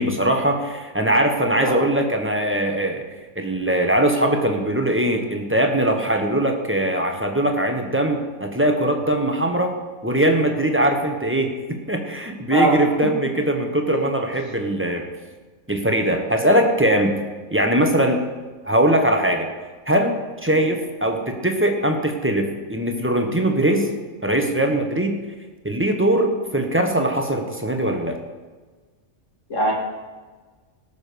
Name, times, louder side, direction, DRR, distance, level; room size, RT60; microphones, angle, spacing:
voice 1, 0.0-3.0 3.3-9.7 10.0-15.0 15.7-17.2 17.5-18.2 18.6-19.5 19.9-23.9 24.2-25.2 25.6-28.2, right 1 dB, 10° right, 3 dB, 1.1 m, -21 dB
voice 2, 12.5-13.2 13.9-14.1 20.5-20.7 29.5-29.7, right 1 dB, 60° left, -3 dB, 3.2 m, -23 dB
18.0 x 6.8 x 5.2 m, 1.3 s
omnidirectional pair, 1.5 m